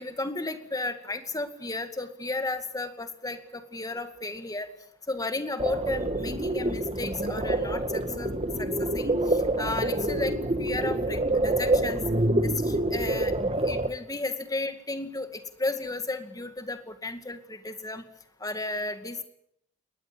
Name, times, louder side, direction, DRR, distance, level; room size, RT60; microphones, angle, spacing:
voice 1, 0.0-4.7 5.1-8.3 8.6-12.0 12.4-13.3 13.6-18.0 18.4-19.2, left 2 dB, 15° left, 8 dB, 2.1 m, -33 dB
sound 1, 5.6-13.9, right 1 dB, 30° right, 1.7 m, -27 dB
22.0 x 19.5 x 9.0 m, 0.73 s
head